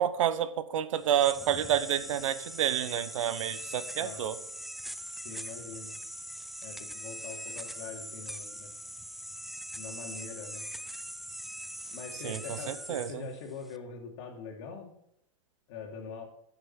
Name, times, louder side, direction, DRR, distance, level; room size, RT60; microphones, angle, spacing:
voice 1, 0.0-4.4 12.2-13.2, right 10 dB, 80° right, 14 dB, 0.8 m, -29 dB
sound 1, 0.9-13.8, equal, ahead, 0.4 m, -42 dB
voice 2, 5.2-6.0 6.6-8.7 9.7-10.7 11.9-14.9 15.7-16.2, left 5 dB, 60° left, 3 dB, 2.5 m, -43 dB
10.5 x 6.9 x 5.7 m, 0.77 s
hypercardioid pair, 120°, 16 cm